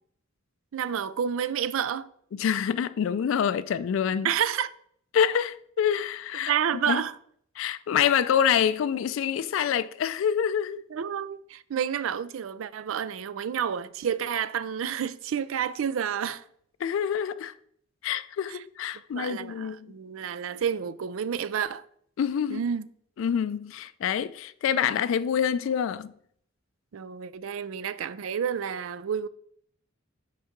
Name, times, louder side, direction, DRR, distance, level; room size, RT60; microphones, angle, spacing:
voice 1, 0.7-2.1 4.2-4.7 6.4-7.1 10.9-16.4 18.5-18.6 19.1-21.8 22.5-22.9 26.9-29.3, right 8 dB, 80° right, 0.4 m, -30 dB
voice 2, 2.3-4.3 5.1-6.5 6.9-7.0 7.6-10.8 16.8-17.5 18.0-19.9 22.2-22.6 23.2-26.1, left 8 dB, 70° left, 0.3 m, -26 dB
6.4 x 4.7 x 4.4 m
head